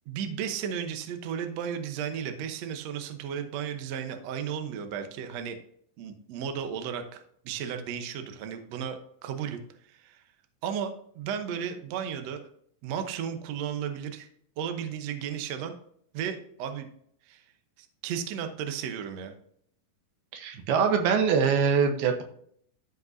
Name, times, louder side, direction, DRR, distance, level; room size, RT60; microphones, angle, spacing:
voice 1, 0.1-5.6 6.0-10.2 10.6-12.5 12.8-14.3 14.6-15.7 16.1-16.9 17.3-17.4 17.8-19.3, right 8 dB, 75° right, 6 dB, 1.6 m, -34 dB
voice 2, 20.3-22.2, right 6 dB, 90° right, 5 dB, 3.0 m, -23 dB
13.5 x 5.3 x 2.7 m, 0.65 s
omnidirectional pair, 4.4 m